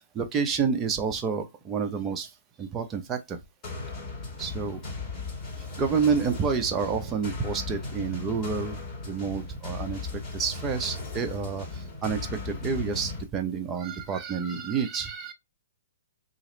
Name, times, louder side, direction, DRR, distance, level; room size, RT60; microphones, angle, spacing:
voice 1, 0.0-2.3 2.6-3.4 4.4-4.8 5.8-8.8 9.0-15.3, right 6 dB, 20° right, 0.7 m, -29 dB
sound 1, 3.6-13.2, left 3 dB, 25° left, 2.0 m, -37 dB
3.0 x 2.8 x 3.8 m
hypercardioid pair, 140°, 0 cm